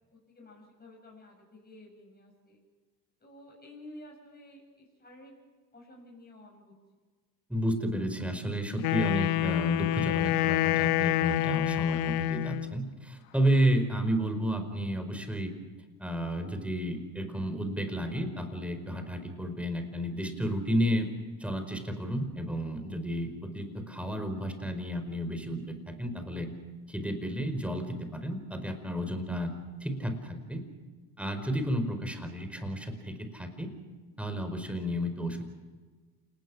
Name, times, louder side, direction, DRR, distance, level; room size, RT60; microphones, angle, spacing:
voice 1, 0.1-2.6 3.2-5.3 5.7-6.7, left 1 dB, 20° left, -1 dB, 7.7 m, -52 dB
voice 2, 7.5-15.5 16.0-21.1 21.4-26.5 26.9-29.5 29.8-30.6 31.2-33.7 34.2-35.5, equal, 5° right, 7 dB, 4.9 m, -31 dB
Wind instrument woodwind instrument, 8.8-12.8, left 15 dB, 75° left, 1.0 m, -27 dB
29.0 x 19.0 x 6.4 m, 1.4 s
supercardioid pair, 90°, 48 cm